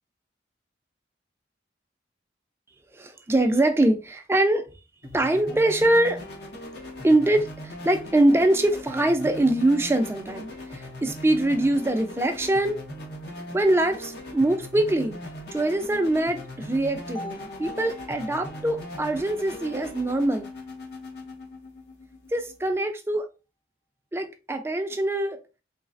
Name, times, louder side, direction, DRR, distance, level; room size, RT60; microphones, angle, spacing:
voice 1, 2.9-4.7 5.1-6.2 7.0-12.8 13.5-15.2 15.5-20.5 22.3-23.3 24.1-25.4, right 1 dB, 15° right, 0.4 m, -23 dB
sound 1, 5.0-22.8, left 1 dB, 60° left, 0.9 m, -40 dB
sound 2, 17.1-21.1, left 2 dB, 20° left, 0.7 m, -44 dB
4.0 x 3.2 x 2.5 m
head